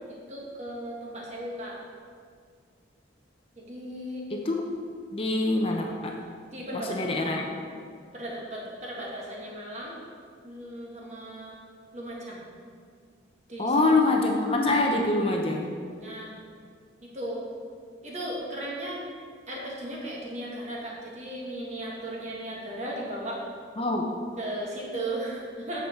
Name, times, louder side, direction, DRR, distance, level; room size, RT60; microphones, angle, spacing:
voice 1, 0.1-1.8 3.6-4.3 6.5-7.4 8.1-10.0 10.4-11.6 11.9-12.4 13.5-13.7 16.0-16.4 17.0-17.5 18.0-19.0 19.5-23.4 24.4-25.8, right 1 dB, 40° right, -4 dB, 1.8 m, -36 dB
voice 2, 4.3-4.6 5.1-6.2 6.7-7.5 13.6-15.7 23.8-24.1, left 2 dB, 30° left, 1 dB, 0.7 m, -25 dB
8.8 x 7.2 x 4.5 m, 2.1 s
head